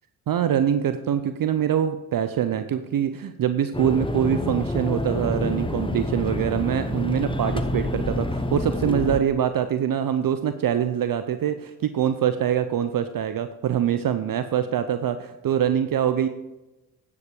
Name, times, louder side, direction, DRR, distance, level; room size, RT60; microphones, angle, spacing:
voice 1, 0.3-16.3, right 9 dB, 45° right, 10 dB, 0.7 m, -24 dB
sound 1, 3.7-9.2, left 1 dB, 10° left, 0.9 m, -27 dB
9.5 x 7.3 x 4.8 m, 1.0 s
hypercardioid pair, 45°, 48 cm